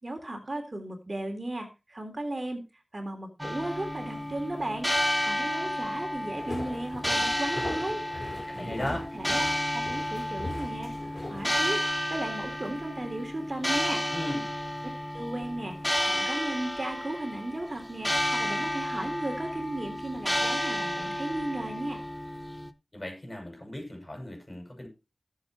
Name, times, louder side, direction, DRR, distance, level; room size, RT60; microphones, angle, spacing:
voice 1, 0.0-2.6 2.9-4.9 5.2-8.0 8.5-11.8 12.1-14.1 15.1-15.8 16.1-22.0, right 1 dB, 40° right, 4 dB, 3.5 m, -35 dB
sound 1, 3.4-22.7, equal, 10° left, 1.0 m, -31 dB
sound 2, 6.4-11.6, left 2 dB, 50° left, 4.9 m, -40 dB
voice 2, 8.5-9.0 14.1-14.5 22.9-24.9, left 1 dB, 35° left, 2 dB, 6.7 m, -36 dB
18.5 x 7.5 x 3.1 m, 0.28 s
wide cardioid pair, 60°, 0 cm